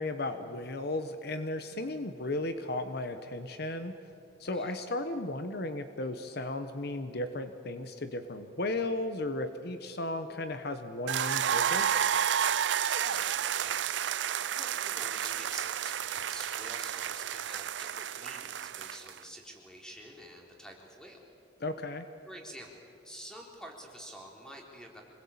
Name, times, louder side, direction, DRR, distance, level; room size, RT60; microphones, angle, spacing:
voice 1, 0.0-3.9 4.4-12.1 21.6-22.0, left 2 dB, 60° left, 9 dB, 1.1 m, -35 dB
voice 2, 4.5-4.9 13.0-21.3 22.2-25.0, equal, 5° left, 0 dB, 3.9 m, -48 dB
sound 1, 11.1-19.2, right 9 dB, 80° right, 0.5 m, -31 dB
26.0 x 20.5 x 8.7 m, 2.7 s
head